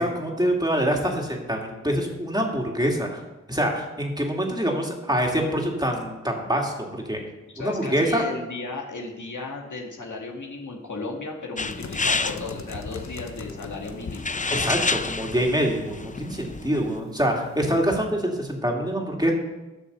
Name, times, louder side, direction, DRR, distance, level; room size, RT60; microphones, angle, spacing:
voice 1, 0.0-3.2 3.5-7.2 7.6-8.2 14.5-19.3, equal, 15° right, 0 dB, 2.4 m, -25 dB
voice 2, 7.5-15.0, left 3 dB, 85° left, 0 dB, 1.9 m, -35 dB
sound 1, 11.6-17.0, left 3 dB, 25° left, 0.5 m, -30 dB
sound 2, 11.7-17.9, left 5 dB, 70° left, 1.0 m, -42 dB
12.0 x 6.7 x 6.9 m, 1.1 s
wide cardioid pair, 50°, 29 cm